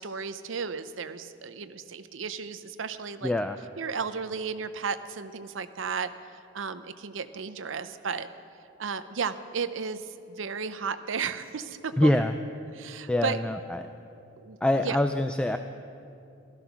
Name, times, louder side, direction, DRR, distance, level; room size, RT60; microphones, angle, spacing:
voice 1, 0.0-3.3 3.8-6.1 6.5-8.3 8.8-12.1 12.7-13.4 14.4-14.6 14.8-15.0, right 5 dB, 75° right, 12 dB, 0.7 m, -34 dB
voice 2, 3.2-3.6 12.0-12.3 13.1-13.8 14.6-15.6, left 1 dB, 5° left, 7 dB, 0.4 m, -25 dB
15.5 x 13.5 x 5.9 m, 2.6 s
head